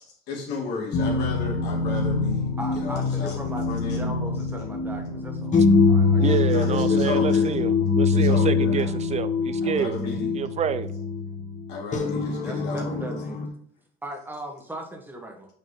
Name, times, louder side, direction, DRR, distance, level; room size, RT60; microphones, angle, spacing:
voice 1, 0.3-4.1 6.2-7.8 8.1-8.9 9.6-10.3 11.7-13.1, left 4 dB, 80° left, 2.3 m, -34 dB
sound 1, 0.9-13.5, left 4 dB, 45° left, 1.3 m, -24 dB
voice 2, 2.6-5.6 5.9-6.7 12.4-13.4 14.0-15.5, right 1 dB, 10° right, 1.4 m, -38 dB
voice 3, 6.2-10.0 10.4-10.9, right 8 dB, 40° right, 0.4 m, -28 dB
5.5 x 3.7 x 5.7 m
cardioid pair, 110°, 17 cm